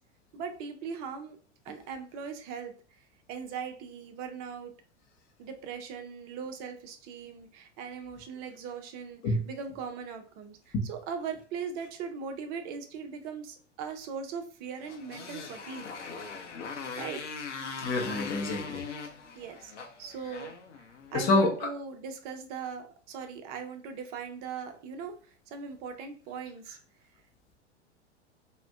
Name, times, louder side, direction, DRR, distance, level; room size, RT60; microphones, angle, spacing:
voice 1, 0.3-1.4 1.7-2.7 3.3-4.7 5.4-15.9 16.7-17.2 19.3-19.7 20.0-25.1 25.5-26.8, right 6 dB, 30° right, 6 dB, 0.4 m, -40 dB
Motorcycle, 14.8-21.3, left 5 dB, 80° left, 0.6 m, -40 dB
voice 2, 17.8-18.8 21.1-21.7, left 2 dB, 25° left, 0 dB, 0.7 m, -27 dB
2.5 x 2.1 x 3.3 m, 0.41 s
figure-of-eight pair, 95°, 35 cm